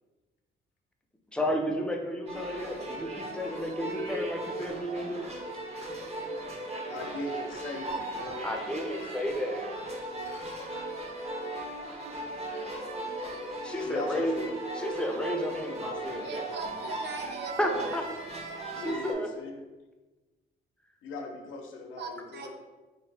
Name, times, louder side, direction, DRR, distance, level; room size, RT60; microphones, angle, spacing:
voice 1, 1.3-5.3 8.4-9.7 13.6-14.3 14.7-16.4 17.6-18.0 18.8-19.3, equal, 5° left, 2 dB, 0.6 m, -32 dB
sound 1, 2.3-19.1, right 1 dB, 30° right, 0.9 m, -37 dB
voice 2, 6.9-8.8 12.5-14.5 18.7-19.6 21.0-22.5, left 2 dB, 85° left, 3 dB, 0.6 m, -40 dB
voice 3, 16.2-18.0 22.0-22.5, right 4 dB, 60° right, 3 dB, 0.7 m, -39 dB
3.9 x 2.9 x 3.3 m, 1.2 s
cardioid pair, 90°, 20 cm